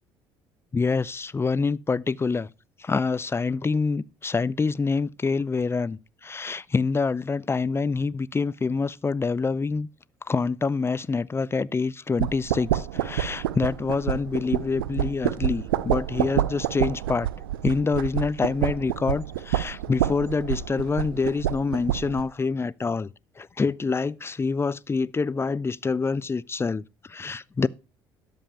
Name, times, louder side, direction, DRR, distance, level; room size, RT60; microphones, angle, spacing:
voice 1, 0.7-2.5 2.8-9.9 10.3-17.3 17.6-23.1 23.4-27.7, left 4 dB, 20° left, 0.5 m, -26 dB
sound 1, 12.2-22.3, right 12 dB, 85° right, 0.5 m, -28 dB
12.5 x 5.4 x 5.6 m
hypercardioid pair, 60°, 12 cm